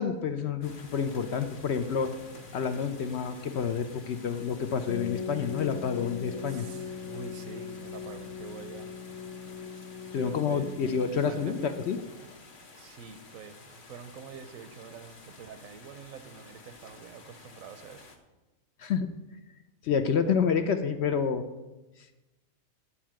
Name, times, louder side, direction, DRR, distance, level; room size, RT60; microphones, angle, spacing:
voice 1, 0.0-2.1 2.5-6.7 10.1-12.0 18.8-19.1 19.8-21.5, left 6 dB, 60° left, 9 dB, 0.7 m, -28 dB
sound 1, 0.6-18.2, left 3 dB, 40° left, 1.1 m, -51 dB
sound 2, 4.9-12.4, left 6 dB, 80° left, 1.1 m, -40 dB
voice 2, 6.4-8.9 10.2-11.7 12.2-12.3 12.8-18.1, right 6 dB, 80° right, 10 dB, 1.1 m, -46 dB
10.0 x 4.6 x 7.5 m, 1.1 s
omnidirectional pair, 1.4 m